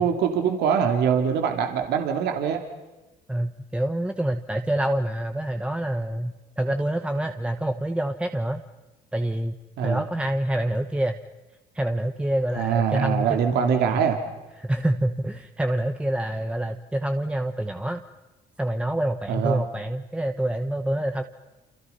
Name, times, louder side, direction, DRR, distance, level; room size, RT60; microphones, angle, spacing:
voice 1, 0.0-2.6 9.8-10.0 12.5-14.2 19.3-19.6, right 7 dB, 80° right, 5 dB, 2.9 m, -23 dB
voice 2, 3.3-8.6 9.1-9.6 9.8-11.2 11.7-14.0 14.6-18.0 18.6-21.2, right 1 dB, 5° right, 6 dB, 1.2 m, -26 dB
29.0 x 27.5 x 5.7 m, 1.1 s
cardioid pair, 110°, 17 cm